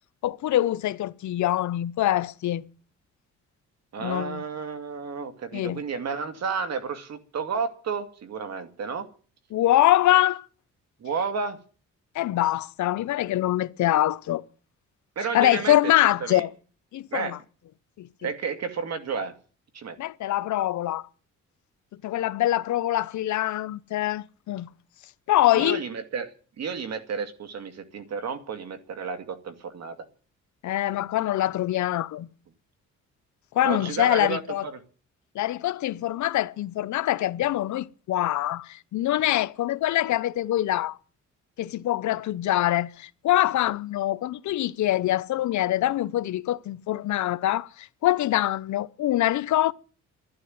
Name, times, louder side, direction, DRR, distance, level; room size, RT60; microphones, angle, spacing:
voice 1, 0.2-2.6 4.0-4.4 5.5-5.8 9.5-10.5 12.1-14.4 15.3-16.5 16.9-17.4 18.0-18.3 20.0-21.1 22.0-24.7 25.3-25.8 30.6-32.3 33.5-34.7 35.3-41.0 41.6-49.7, left 14 dB, 70° left, 0.8 m, -24 dB
voice 2, 3.9-9.1 11.0-11.6 15.2-16.4 17.1-17.3 18.2-19.3 19.7-20.0 25.5-30.0 33.6-34.8, right 5 dB, 60° right, 2.5 m, -32 dB
12.5 x 11.5 x 9.5 m
cardioid pair, 90°, 30 cm